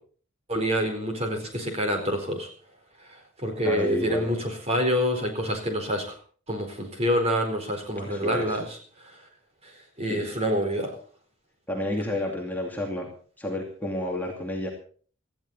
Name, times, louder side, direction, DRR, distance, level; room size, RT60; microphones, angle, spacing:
voice 1, 0.5-2.5 3.4-6.1 6.5-8.6 10.0-10.9, equal, 30° right, 4 dB, 4.4 m, -27 dB
voice 2, 3.6-4.3 8.0-8.6 10.0-10.3 11.7-13.1 13.4-14.7, left 1 dB, 10° left, 0 dB, 2.6 m, -30 dB
18.5 x 14.5 x 4.1 m, 0.43 s
head